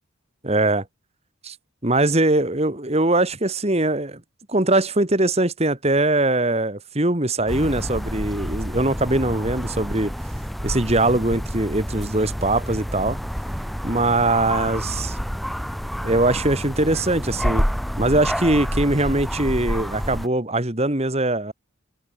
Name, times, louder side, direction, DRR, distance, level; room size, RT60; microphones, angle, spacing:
voice 1, 0.4-0.8 1.4-1.6 1.8-4.2 4.5-10.1 10.6-13.2 13.8-15.2 16.0-17.6 18.0-21.5, right 2 dB, 30° right, 2.3 m, -21 dB
sound 1, 7.5-20.3, equal, ahead, 2.0 m, -28 dB
head